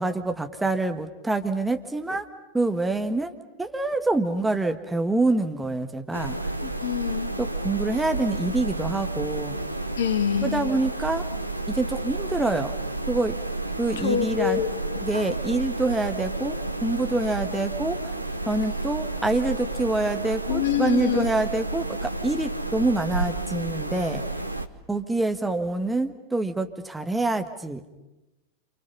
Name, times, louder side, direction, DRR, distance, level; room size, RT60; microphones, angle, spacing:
voice 1, 0.0-2.2 2.5-6.4 7.4-9.5 10.4-11.2 11.7-12.7 13.1-13.4 13.8-14.6 15.0-18.0 18.5-24.2 24.9-27.8, right 2 dB, 5° right, 6 dB, 1.6 m, -26 dB
sound 1, 6.1-24.7, right 2 dB, 85° right, 1.1 m, -31 dB
voice 2, 6.6-7.3 10.0-10.8 14.0-15.0 20.5-21.3, left 10 dB, 60° left, 8 dB, 1.9 m, -26 dB
28.5 x 28.0 x 5.6 m, 1.0 s
figure-of-eight pair, 90°, 0 cm